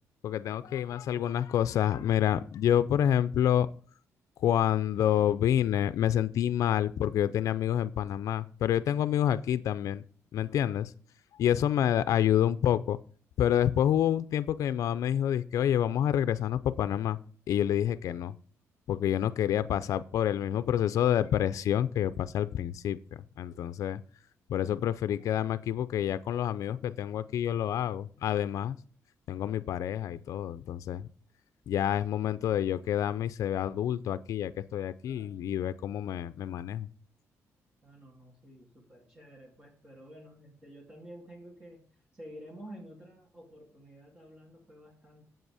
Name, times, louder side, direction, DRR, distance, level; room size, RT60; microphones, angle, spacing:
voice 1, 0.2-3.7 4.4-10.0 10.3-10.9 11.3-13.0 13.4-17.2 17.5-18.4 18.9-24.0 24.5-28.8 29.3-31.1 31.7-36.9, left 10 dB, 70° left, 13 dB, 0.5 m, -28 dB
voice 2, 10.4-10.8 35.1-35.4 37.8-41.8 42.1-45.2, equal, 20° right, -2 dB, 2.4 m, -50 dB
8.0 x 7.5 x 4.9 m, 0.42 s
cardioid pair, 130°, 6 cm